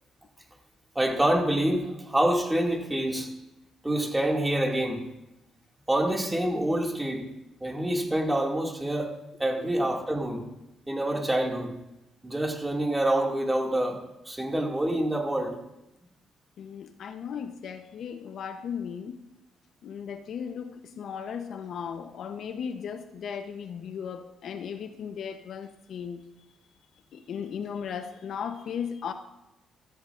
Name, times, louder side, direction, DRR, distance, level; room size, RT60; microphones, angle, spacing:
voice 1, 1.0-3.3 3.8-5.0 5.9-7.3 7.6-9.1 9.4-10.4 10.9-11.7 12.2-14.0 14.3-15.5, right 1 dB, 10° right, 1 dB, 2.3 m, -26 dB
voice 2, 16.6-19.2 19.8-26.2 27.1-29.1, left 7 dB, 65° left, 8 dB, 0.8 m, -36 dB
16.0 x 14.0 x 2.5 m, 0.91 s
cardioid pair, 90°, 0 cm